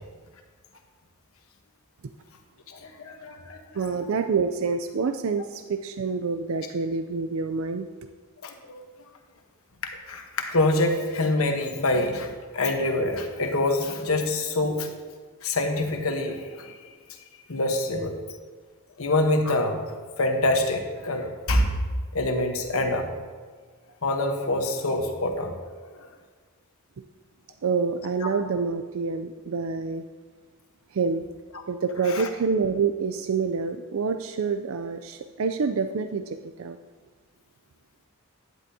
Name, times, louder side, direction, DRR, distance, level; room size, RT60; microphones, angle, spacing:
voice 1, 2.7-3.6 8.4-8.8 10.1-14.9 15.4-16.7 17.5-18.1 19.0-19.9 20.2-21.7 22.1-23.1 24.0-25.5 26.0-26.1 28.2-28.3 32.1-32.3, left 2 dB, 70° left, 3 dB, 1.1 m, -25 dB
voice 2, 3.7-7.9 27.6-30.0 30.9-31.3 31.7-36.8, right 5 dB, 65° right, 8 dB, 0.4 m, -27 dB
11.5 x 10.0 x 2.8 m, 1.5 s
head